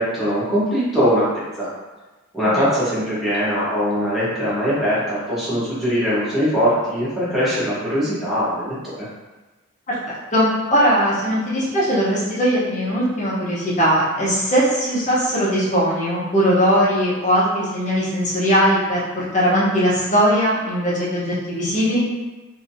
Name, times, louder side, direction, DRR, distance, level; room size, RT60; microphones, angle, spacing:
voice 1, 0.0-1.7 2.3-9.1, equal, ahead, -11 dB, 1.1 m, -21 dB
voice 2, 9.9-22.0, equal, 35° left, -7 dB, 0.9 m, -19 dB
3.0 x 2.7 x 2.7 m, 1.2 s
head